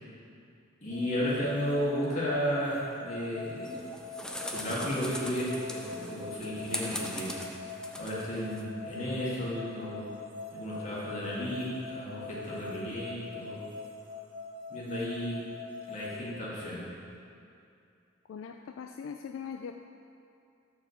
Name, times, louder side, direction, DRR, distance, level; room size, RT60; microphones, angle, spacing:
voice 1, 0.8-3.7 4.5-7.3 7.9-10.1 10.5-13.6 14.7-15.4 15.9-16.9, equal, 40° left, -7 dB, 1.9 m, -33 dB
sound 1, 0.9-16.1, left 3 dB, 25° right, 1.0 m, -43 dB
sound 2, 3.6-8.6, left 1 dB, 5° left, 0.4 m, -40 dB
voice 2, 18.3-19.7, left 6 dB, 75° left, 5 dB, 0.3 m, -40 dB
6.3 x 4.7 x 6.3 m, 2.5 s
head